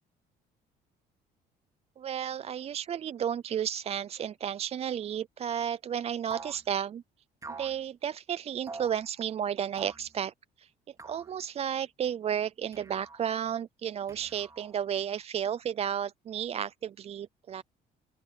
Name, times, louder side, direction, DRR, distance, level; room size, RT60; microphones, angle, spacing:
voice 1, 2.0-7.0 7.6-10.7 11.0-17.6, right 9 dB, 35° right, 0.4 m, -33 dB
sound 1, 6.3-6.6 7.4-7.8 8.7-9.0 9.8-10.1 11.0-11.3 12.7-13.2 14.1-14.8, right 4 dB, 20° right, 3.2 m, -45 dB
open air
cardioid pair, 110°, 17 cm